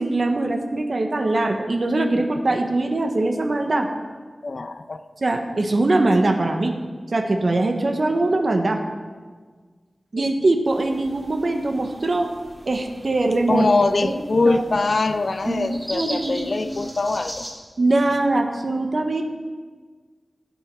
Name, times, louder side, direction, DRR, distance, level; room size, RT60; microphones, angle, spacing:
voice 1, 0.0-3.9 5.2-6.7 7.1-8.8 10.1-12.3 12.7-13.7 14.0-14.1 14.4-14.6 15.5-16.5 17.8-19.2, right 2 dB, 55° right, 4 dB, 1.2 m, -22 dB
voice 2, 4.4-5.0 10.2-10.3 13.5-17.5, left 3 dB, 60° left, 10 dB, 0.6 m, -23 dB
sound 1, 10.6-17.5, equal, 15° right, 4.0 m, -40 dB
15.5 x 7.3 x 4.8 m, 1.5 s
wide cardioid pair, 90°, 0 cm